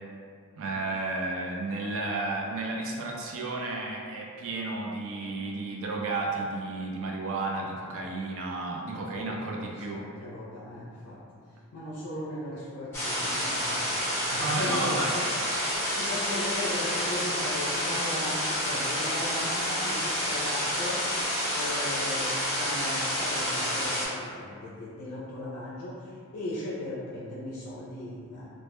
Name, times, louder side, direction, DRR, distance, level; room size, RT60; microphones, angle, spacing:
voice 1, 0.6-10.1 14.4-15.2, right 2 dB, 60° right, -1 dB, 0.4 m, -32 dB
voice 2, 8.9-11.2 11.7-15.3 15.9-21.0 21.5-28.5, left 1 dB, 85° left, -6 dB, 0.4 m, -37 dB
sound 1, 12.9-24.1, equal, 10° left, 0.6 m, -29 dB
2.1 x 2.1 x 2.9 m, 2.2 s
head